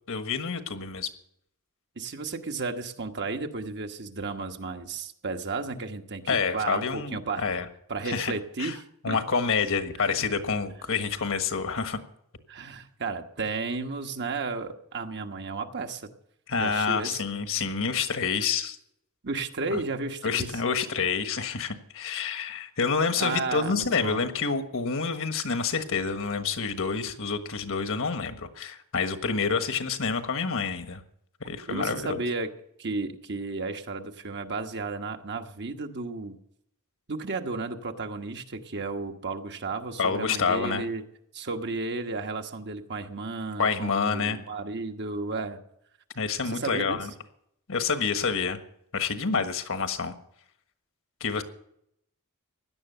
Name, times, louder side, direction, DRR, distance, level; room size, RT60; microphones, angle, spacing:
voice 1, 0.1-1.1 6.3-7.6 8.0-8.3 8.6-8.7 9.0-12.0 16.5-18.8 19.7-19.8 20.2-31.0 31.4-32.2 40.0-40.9 43.6-44.4 46.1-47.1 47.7-48.6 48.9-50.1 51.2-51.4, left 5 dB, 65° left, 8 dB, 1.4 m, -28 dB
voice 2, 2.0-7.4 7.9-9.2 10.0-10.3 12.5-16.1 16.6-17.2 19.2-20.5 23.2-24.2 31.7-32.5 32.8-36.4 37.1-41.0 41.3-45.6 46.4-47.0, right 3 dB, 50° right, 5 dB, 1.3 m, -33 dB
16.5 x 11.0 x 6.7 m, 0.73 s
head